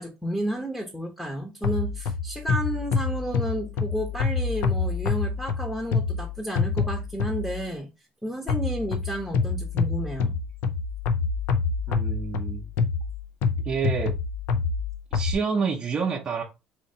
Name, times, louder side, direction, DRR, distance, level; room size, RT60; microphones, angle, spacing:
voice 1, 0.0-7.9 8.2-10.3, equal, 5° left, 0.8 m, -32 dB
sound 1, 1.6-7.7 8.5-15.3, left 5 dB, 75° left, 0.5 m, -27 dB
voice 2, 11.9-12.6 13.6-14.2 14.5-14.6 15.1-16.4, right 5 dB, 35° right, 0.6 m, -28 dB
4.2 x 2.8 x 2.7 m
cardioid pair, 125°, 3 cm